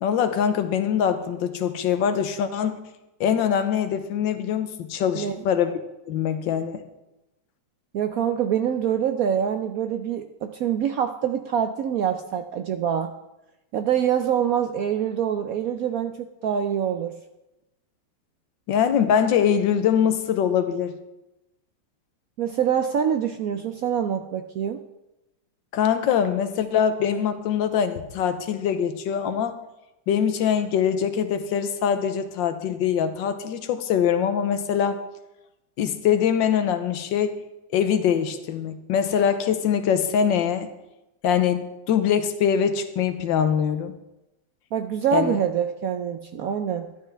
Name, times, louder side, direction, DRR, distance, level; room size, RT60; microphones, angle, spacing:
voice 1, 0.0-2.8 3.2-5.7 6.1-6.8 18.7-20.9 25.7-29.5 30.1-35.0 35.8-37.4 37.7-40.7 41.2-44.0 45.1-45.4, left 8 dB, 80° left, 9 dB, 1.5 m, -23 dB
voice 2, 7.9-13.1 13.7-17.1 22.4-24.8 44.7-46.9, right 8 dB, 70° right, 7 dB, 0.8 m, -25 dB
12.5 x 11.5 x 3.4 m, 0.95 s
omnidirectional pair, 2.0 m